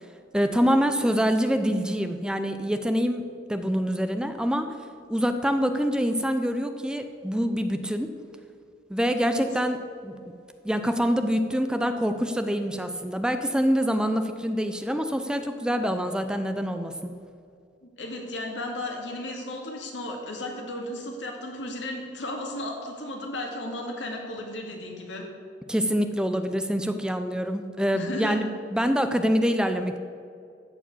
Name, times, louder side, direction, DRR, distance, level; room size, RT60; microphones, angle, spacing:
voice 1, 0.3-4.7 5.1-8.1 8.9-9.8 10.0-10.2 10.6-17.1 25.7-30.0, equal, 5° right, 8 dB, 0.5 m, -25 dB
voice 2, 17.8-25.2 27.9-28.4, left 1 dB, 90° left, 1 dB, 2.2 m, -34 dB
14.0 x 4.9 x 8.4 m, 2.3 s
head